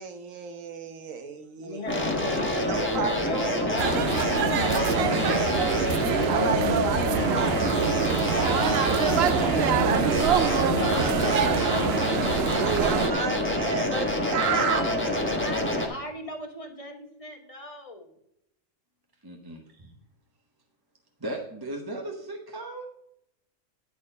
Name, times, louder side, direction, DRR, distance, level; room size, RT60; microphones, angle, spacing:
voice 1, 0.0-2.0 2.6-3.8 6.2-7.9 8.3-8.4 9.2-10.6 12.6-14.8, right 6 dB, 80° right, 7 dB, 1.3 m, -32 dB
voice 2, 1.6-6.3 8.3-9.3 10.4-12.6 14.4-18.1, left 1 dB, 25° left, 2 dB, 1.4 m, -37 dB
sound 1, 1.9-15.9, left 1 dB, 10° left, 1.2 m, -27 dB
voice 3, 3.2-4.1 5.1-5.5 6.3-9.2 10.7-11.9 19.2-19.9 21.2-22.9, right 2 dB, 20° right, 2 dB, 0.9 m, -37 dB
sound 2, 3.8-13.1, right 9 dB, 65° right, 0.7 m, -26 dB
10.5 x 4.3 x 5.5 m, 0.76 s
omnidirectional pair, 1.3 m